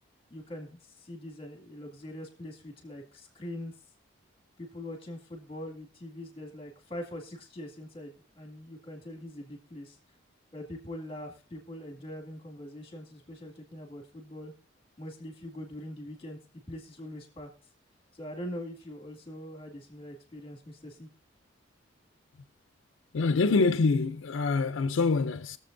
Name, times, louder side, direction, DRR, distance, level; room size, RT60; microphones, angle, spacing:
voice 1, 0.3-3.7 4.6-10.0 10.5-14.5 15.0-16.4 16.7-17.5 18.1-21.1, left 1 dB, 25° left, 2.0 m, -42 dB
voice 2, 23.1-25.6, left 4 dB, 90° left, 0.5 m, -25 dB
21.5 x 7.2 x 2.6 m
head